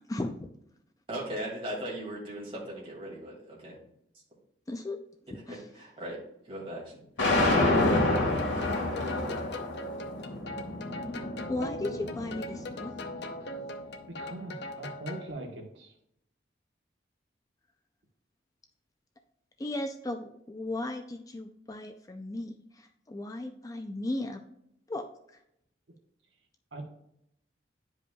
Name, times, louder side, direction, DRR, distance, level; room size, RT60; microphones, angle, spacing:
voice 1, 0.1-0.5 4.7-5.0 5.5-5.7 9.0-9.3 11.2-13.1 19.6-24.4 24.9-25.0 25.3-25.4, left 2 dB, 20° left, 5 dB, 0.4 m, -36 dB
voice 2, 1.1-3.8 5.5-6.2 6.4-6.9, right 1 dB, 30° right, -4 dB, 2.3 m, -38 dB
sound 1, 7.2-13.3, left 2 dB, 85° left, 1.8 m, -29 dB
sound 2, 7.9-15.3, left 2 dB, 65° left, 0.6 m, -40 dB
voice 3, 14.1-15.9 26.7-26.8, right 2 dB, 85° right, 2 dB, 1.2 m, -41 dB
10.5 x 5.0 x 2.3 m, 0.76 s
head